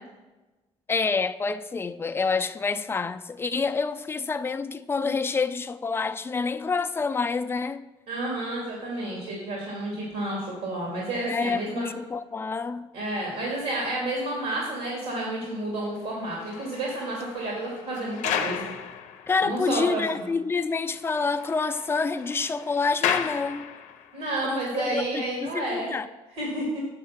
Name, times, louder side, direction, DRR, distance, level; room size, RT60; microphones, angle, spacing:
voice 1, 0.9-7.9 11.3-12.9 19.3-23.7 24.4-26.1, left 4 dB, 20° left, 0.4 m, -28 dB
voice 2, 8.1-11.9 12.9-18.6 19.4-20.2 24.1-25.9 26.4-26.8, right 1 dB, 85° right, 2.4 m, -30 dB
sound 1, 16.1-19.8 20.1-20.2 20.6-20.7 20.9-24.2 24.9-25.1, left 8 dB, 90° left, 0.6 m, -34 dB
7.4 x 7.1 x 5.8 m
cardioid pair, 120°, 12 cm